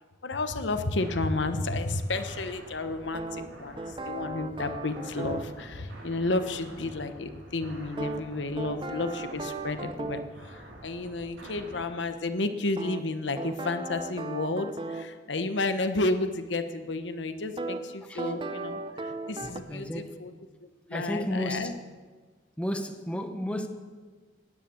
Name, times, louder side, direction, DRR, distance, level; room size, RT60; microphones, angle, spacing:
voice 1, 0.2-20.3 20.6-21.7, left 2 dB, 75° left, 9 dB, 1.0 m, -32 dB
sound 1, 1.0-11.9, right 1 dB, 85° right, 3.6 m, -48 dB
sound 2, 3.1-5.5 8.0-10.3 12.8-15.1 17.6-17.8 18.2-19.6, right 2 dB, 30° right, 0.9 m, -36 dB
voice 2, 19.7-20.2 20.9-21.7 22.6-23.7, left 1 dB, 5° left, 6 dB, 1.1 m, -32 dB
17.5 x 10.5 x 7.1 m, 1.4 s
head